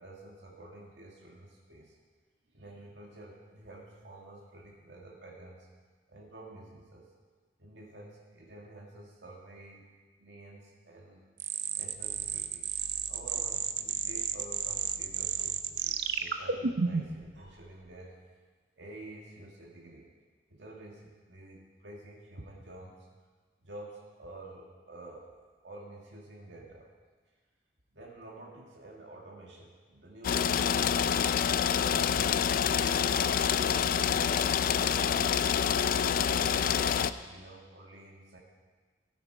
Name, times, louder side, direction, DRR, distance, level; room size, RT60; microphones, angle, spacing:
voice 1, 0.0-2.0 2.5-5.7 6.1-7.1 7.6-9.9 10.2-11.2 11.8-12.6 13.1-18.2 18.8-20.1 20.5-23.0 23.6-25.3 25.6-26.9 27.9-34.0 34.7-35.7 36.2-38.4, right 2 dB, 90° right, -2 dB, 1.9 m, -49 dB
sound 1, 11.4-17.2, right 7 dB, 65° right, 0.7 m, -32 dB
sound 2, 30.2-37.1, left 8 dB, 55° left, 0.4 m, -27 dB
16.0 x 9.2 x 4.7 m, 1.4 s
head